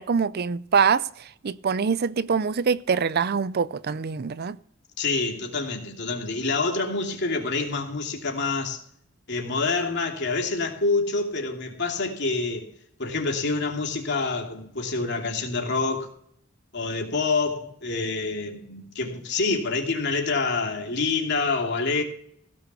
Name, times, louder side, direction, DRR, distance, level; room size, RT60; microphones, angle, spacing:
voice 1, 0.0-4.6, right 6 dB, 50° right, 0.5 m, -24 dB
voice 2, 5.0-8.8 9.3-12.7 13.0-16.1 16.7-22.0, left 3 dB, 60° left, 2.8 m, -27 dB
16.5 x 6.5 x 6.9 m
head